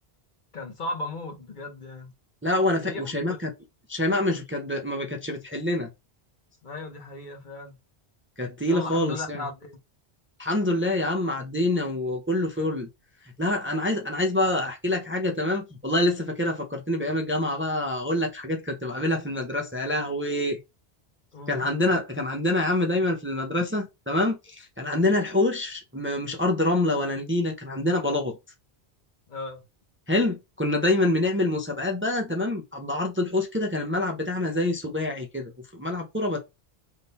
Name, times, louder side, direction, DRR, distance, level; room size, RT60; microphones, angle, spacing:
voice 1, 0.5-2.1 2.8-3.5 6.6-7.7 8.7-9.8 10.5-10.6 21.3-21.7 29.3-29.6, left 2 dB, 50° left, 1.0 m, -36 dB
voice 2, 2.4-3.5 3.9-5.9 8.4-9.4 10.4-12.9 13.4-20.6 21.5-28.4 30.1-36.4, left 1 dB, 15° right, 0.6 m, -26 dB
3.7 x 2.8 x 4.0 m
omnidirectional pair, 1.1 m